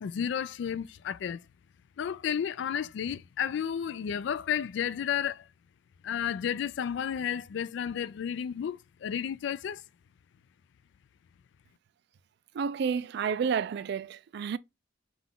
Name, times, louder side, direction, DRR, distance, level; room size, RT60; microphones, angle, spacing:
voice 1, 0.0-1.4 2.0-5.4 6.0-9.8, left 8 dB, 65° left, 0.3 m, -32 dB
voice 2, 12.5-14.6, right 6 dB, 60° right, 0.3 m, -30 dB
5.7 x 2.4 x 3.6 m
head